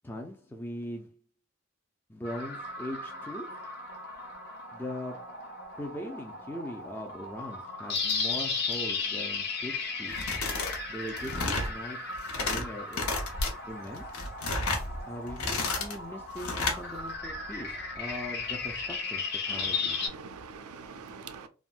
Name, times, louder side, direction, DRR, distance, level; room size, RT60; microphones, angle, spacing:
voice 1, 0.0-1.2 2.1-3.6 4.7-5.4 5.8-10.2 10.9-12.1 12.4-13.1 13.7-14.1 15.1-20.0, left 1 dB, 10° left, 0.3 m, -40 dB
sound 1, 2.2-20.1, left 4 dB, 50° left, 0.7 m, -36 dB
sound 2, 10.1-10.8 11.1-11.7 12.1-12.6 12.9-13.5 14.0-14.9 15.3-16.0 16.4-16.8, left 3 dB, 85° left, 0.8 m, -31 dB
Bird vocalization bird call bird song, 13.3-19.0, equal, 25° left, 1.0 m, -43 dB
voice 2, 19.5-21.5, right 5 dB, 85° right, 0.4 m, -44 dB
3.4 x 2.1 x 2.4 m
head